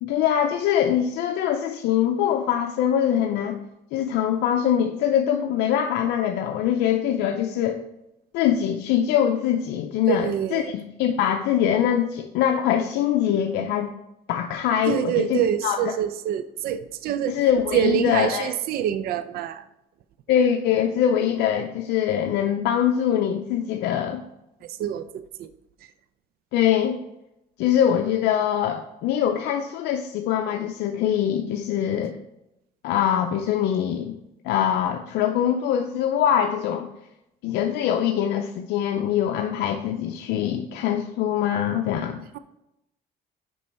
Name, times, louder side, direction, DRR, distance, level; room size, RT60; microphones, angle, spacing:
voice 1, 0.0-3.6 3.9-7.8 8.3-13.9 14.3-15.9 17.3-18.5 20.3-24.2 26.5-27.0 27.6-32.2 32.8-34.2 34.4-36.9 37.4-42.2, left 9 dB, 85° left, 4 dB, 0.5 m, -23 dB
voice 2, 10.1-10.7 14.9-17.4 17.7-19.7 24.6-25.5, right 10 dB, 65° right, 12 dB, 0.4 m, -26 dB
5.4 x 5.3 x 4.2 m, 0.86 s
cardioid pair, 110°, 17 cm